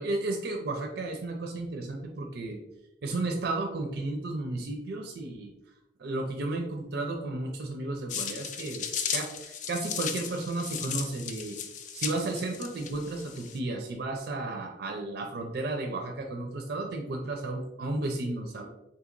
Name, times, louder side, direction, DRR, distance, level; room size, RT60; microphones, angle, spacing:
voice 1, 0.0-2.6 3.0-5.5 6.0-8.9 9.1-11.6 11.9-18.7, right 2 dB, 65° right, 2 dB, 0.4 m, -33 dB
sound 1, 8.1-13.6, left 7 dB, 45° left, 0.3 m, -36 dB
3.8 x 2.8 x 2.5 m, 0.97 s
head